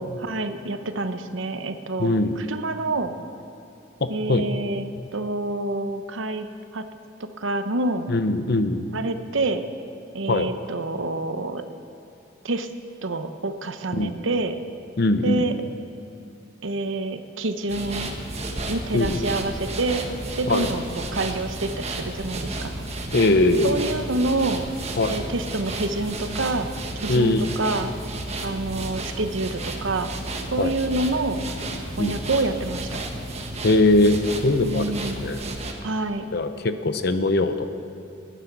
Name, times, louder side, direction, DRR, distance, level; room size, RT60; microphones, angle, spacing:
voice 1, 0.0-3.1 4.1-4.8 5.1-6.5 6.7-6.9 7.4-8.1 8.9-9.6 10.1-11.6 12.4-12.7 13.0-14.6 15.2-15.5 16.6-18.1 18.7-20.0 20.3-22.7 23.6-24.6 25.1-26.7 27.0-27.9 28.4-30.1 30.5-31.4 32.0-33.0 34.6-35.2 35.8-36.3, right 2 dB, 80° right, 9 dB, 0.9 m, -27 dB
voice 2, 2.0-2.4 4.0-4.5 8.1-8.9 10.3-10.5 13.9-14.1 15.0-15.5 18.9-19.3 20.5-20.7 23.1-23.8 25.0-25.2 27.1-27.5 30.6-30.8 32.0-32.2 33.6-35.4 36.3-37.7, left 2 dB, 55° left, 9 dB, 0.8 m, -21 dB
sound 1, 17.7-35.7, right 2 dB, 35° right, 1.3 m, -32 dB
19.5 x 10.0 x 6.0 m, 2.7 s
head